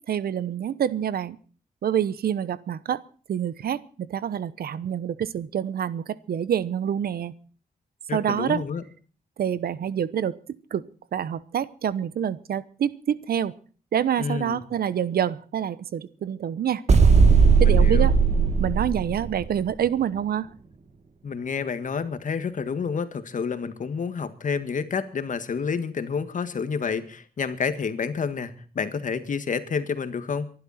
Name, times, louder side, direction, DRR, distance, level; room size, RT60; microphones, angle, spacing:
voice 1, 0.1-1.4 1.8-3.0 3.3-7.3 8.1-8.6 9.4-10.4 10.7-13.5 13.9-16.8 17.6-18.2 18.6-20.5, right 9 dB, 85° right, 18 dB, 0.9 m, -27 dB
voice 2, 8.1-8.8 14.2-14.6 17.6-18.1 21.2-30.5, left 5 dB, 55° left, 11 dB, 1.8 m, -29 dB
sound 1, 16.9-19.6, right 5 dB, 45° right, 1.8 m, -17 dB
24.0 x 11.5 x 4.3 m, 0.41 s
wide cardioid pair, 120°, 15 cm